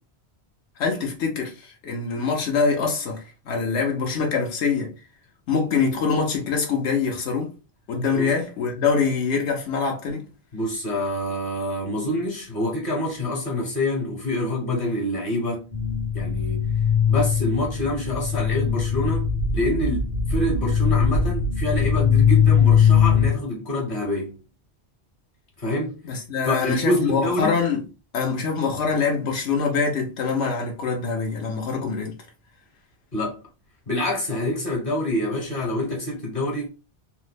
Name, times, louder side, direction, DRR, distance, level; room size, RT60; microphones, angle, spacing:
voice 1, 0.8-4.9 5.5-7.5 7.9-10.3 26.0-27.9 28.1-32.2, left 5 dB, 85° left, 1.0 m, -24 dB
voice 2, 10.5-15.7 16.1-16.7 17.1-19.3 19.5-24.4 25.6-26.0 26.5-27.5 33.1-33.4 33.9-36.7, left 1 dB, 55° left, 1.1 m, -26 dB
sound 1, 15.7-23.3, left 7 dB, 35° left, 0.6 m, -20 dB
3.1 x 2.0 x 3.2 m
omnidirectional pair, 1.1 m